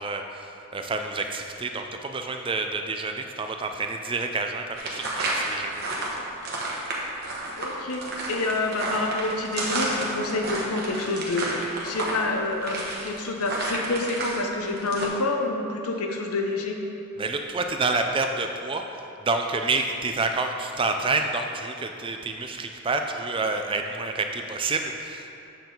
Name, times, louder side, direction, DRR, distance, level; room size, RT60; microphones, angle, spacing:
voice 1, 0.0-6.2 17.2-25.3, right 3 dB, 25° right, 5 dB, 0.4 m, -28 dB
sound 1, 4.7-14.4 14.7-15.1, right 2 dB, 45° right, 1.2 m, -31 dB
voice 2, 7.6-11.6 11.8-16.8, left 2 dB, 90° left, 2 dB, 0.8 m, -28 dB
7.5 x 6.9 x 3.9 m, 2.7 s
head